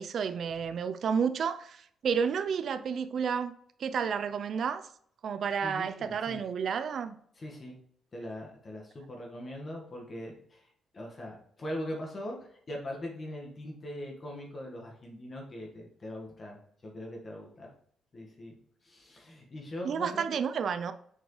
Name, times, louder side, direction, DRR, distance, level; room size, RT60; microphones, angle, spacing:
voice 1, 0.0-3.5 3.8-4.9 5.2-7.2 19.8-20.9, right 6 dB, 60° right, 0.4 m, -31 dB
voice 2, 5.6-6.4 7.4-7.8 8.1-10.7 10.9-17.7 18.1-18.6 18.8-20.2, left 1 dB, 35° left, 1.5 m, -41 dB
6.7 x 4.6 x 3.1 m
cardioid pair, 90°, 0 cm